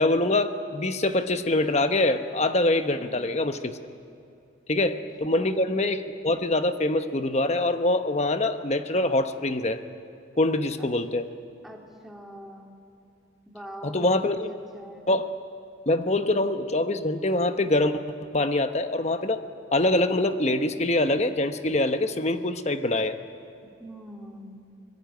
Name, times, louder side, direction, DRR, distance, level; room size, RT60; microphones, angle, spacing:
voice 1, 0.0-3.8 4.7-9.8 10.4-11.3 13.8-14.5 15.1-15.3 15.9-18.0 18.3-19.4 19.7-23.2, left 2 dB, 35° left, 9 dB, 1.0 m, -24 dB
voice 2, 2.9-3.3 4.8-4.9 5.3-5.7 10.8-10.9 11.6-12.7 13.5-14.1 14.4-15.1 23.8-24.6, equal, ahead, 0 dB, 2.5 m, -43 dB
25.0 x 21.5 x 9.1 m, 2.6 s
head